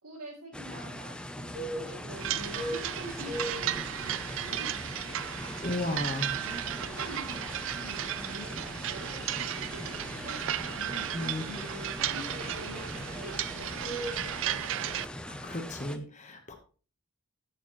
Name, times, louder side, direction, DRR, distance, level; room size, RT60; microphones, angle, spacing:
voice 1, 0.0-1.1 1.5-5.3 6.4-7.4 7.7-10.4 10.7-14.6, right 1 dB, 80° right, -4 dB, 2.7 m, -46 dB
sound 1, 0.5-16.0, left 1 dB, 5° left, 0.5 m, -41 dB
sound 2, 1.5-14.4, equal, 35° right, 5.0 m, -43 dB
sound 3, 2.1-15.1, right 12 dB, 60° right, 0.3 m, -35 dB
voice 2, 5.6-6.4 11.1-11.4 15.3-16.5, left 1 dB, 30° left, 5 dB, 1.0 m, -34 dB
15.0 x 6.7 x 3.0 m, 0.38 s
head